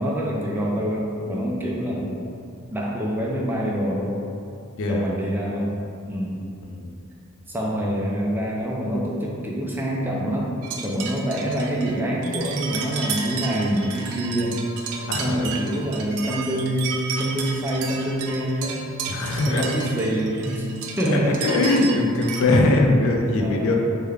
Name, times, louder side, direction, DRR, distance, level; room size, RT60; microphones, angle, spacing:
voice 1, 0.0-2.1 2.7-4.2 4.9-5.8 6.1-6.5 7.5-14.6 15.2-18.9 19.4-20.7 21.0-21.5 22.3-22.6 23.4-23.7, right 1 dB, 10° right, -3 dB, 0.3 m, -26 dB
sound 1, 10.6-22.4, right 5 dB, 90° right, 0.4 m, -33 dB
voice 2, 15.1-15.5 19.1-19.6 21.1-23.7, left 2 dB, 65° left, 1 dB, 0.4 m, -21 dB
3.4 x 2.1 x 3.3 m, 2.4 s
head